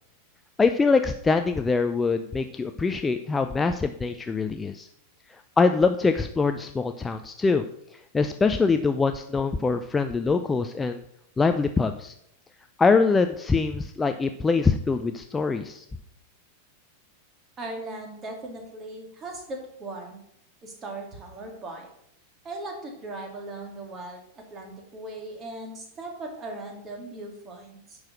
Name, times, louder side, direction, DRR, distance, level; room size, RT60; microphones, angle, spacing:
voice 1, 0.6-4.9 5.6-7.6 8.1-11.0 11.4-12.1 12.8-15.8, left 4 dB, 15° left, 7 dB, 0.5 m, -23 dB
voice 2, 17.6-20.2 20.6-21.9 22.4-28.0, right 2 dB, 25° right, 2 dB, 2.5 m, -38 dB
10.5 x 4.9 x 6.3 m, 0.73 s
figure-of-eight pair, 90°, 0 cm